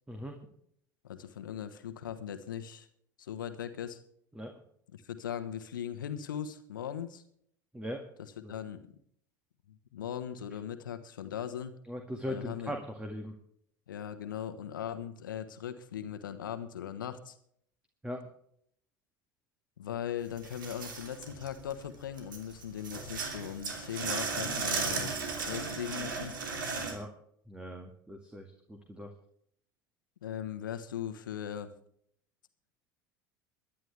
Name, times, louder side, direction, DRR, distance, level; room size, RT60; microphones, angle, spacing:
voice 1, 0.1-0.4 4.4-4.5 7.7-8.0 8.4-8.5 11.9-13.3 18.0-18.3 26.9-27.1 27.5-29.1, equal, 10° right, 4 dB, 2.0 m, -40 dB
voice 2, 1.0-2.9 3.2-4.0 4.9-7.2 8.2-9.0 9.7-11.7 12.3-12.8 13.9-17.3 19.8-25.1 25.4-26.4 30.2-31.7, left 9 dB, 75° left, 10 dB, 1.3 m, -39 dB
sound 1, 20.4-21.8 22.2-26.9, right 4 dB, 75° right, 2.9 m, -35 dB
23.5 x 10.5 x 3.4 m, 0.67 s
figure-of-eight pair, 75°, 11 cm